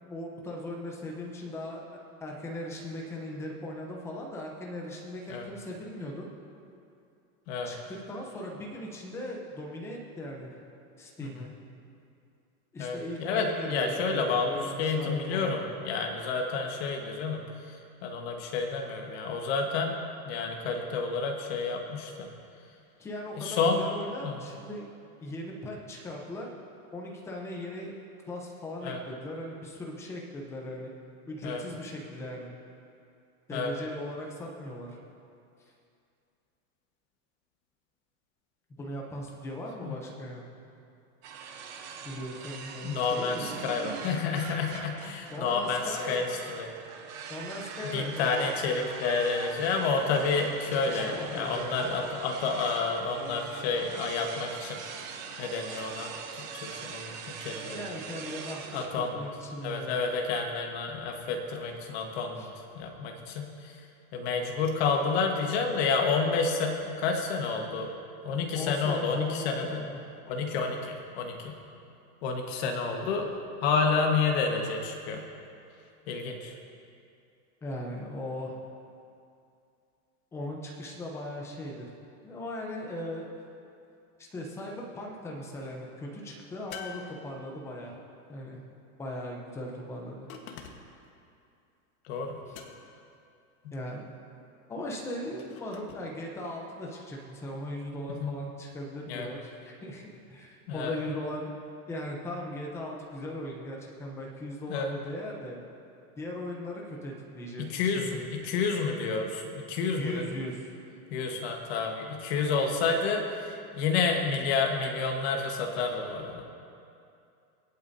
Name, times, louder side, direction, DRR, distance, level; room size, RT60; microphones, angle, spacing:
voice 1, 0.0-6.3 7.6-10.6 11.0-11.5 12.7-15.6 23.0-24.9 25.2-26.5 26.9-28.0 28.3-30.9 31.3-32.5 33.5-35.0 38.8-40.5 42.0-43.5 45.3-46.2 47.3-48.5 50.7-51.9 57.7-58.6 59.1-60.0 62.4-62.5 68.5-70.0 77.6-78.6 80.3-81.9 82.2-83.3 84.2-88.0 88.3-88.6 89.0-90.3 92.5-92.6 93.7-94.2 94.7-101.5 101.9-105.6 106.2-108.2 110.0-110.7, left 1 dB, 5° left, -1 dB, 0.7 m, -38 dB
voice 2, 12.8-17.4 18.0-20.0 20.2-22.3 23.3-23.9 24.2-24.4 28.8-29.0 31.4-31.6 33.5-33.7 39.8-39.9 42.8-46.7 47.8-54.8 55.4-57.8 58.7-59.2 59.6-62.5 62.7-63.8 64.1-67.9 68.2-69.8 70.3-71.5 72.2-73.3 73.6-75.2 76.1-76.5 92.1-92.4 93.6-93.7 98.2-98.3 99.1-99.3 100.7-101.0 104.7-104.9 107.6-110.2 111.1-116.4, left 4 dB, 45° left, 2 dB, 1.4 m, -30 dB
sound 1, 41.2-58.9, right 6 dB, 30° right, 0.7 m, -42 dB
sound 2, 86.7-87.8 90.3-91.1 92.5-93.1 95.4-96.1, left 7 dB, 65° left, 1.4 m, -46 dB
25.0 x 8.6 x 2.7 m, 2.6 s
supercardioid pair, 165°, 45 cm